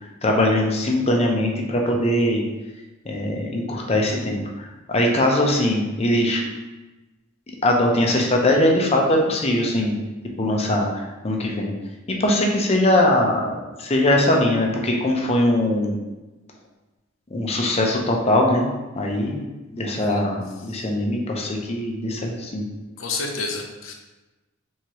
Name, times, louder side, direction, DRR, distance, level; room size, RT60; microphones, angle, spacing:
voice 1, 0.2-2.4 3.1-4.4 4.9-6.4 7.6-9.9 10.4-11.7 12.2-13.5 13.8-15.9 17.3-18.7 19.0-19.5 19.7-22.6, left 1 dB, 30° left, 0 dB, 0.7 m, -21 dB
voice 2, 19.9-20.2 23.0-23.9, left 3 dB, 80° left, 3 dB, 0.7 m, -30 dB
4.6 x 3.6 x 2.9 m, 1.1 s
head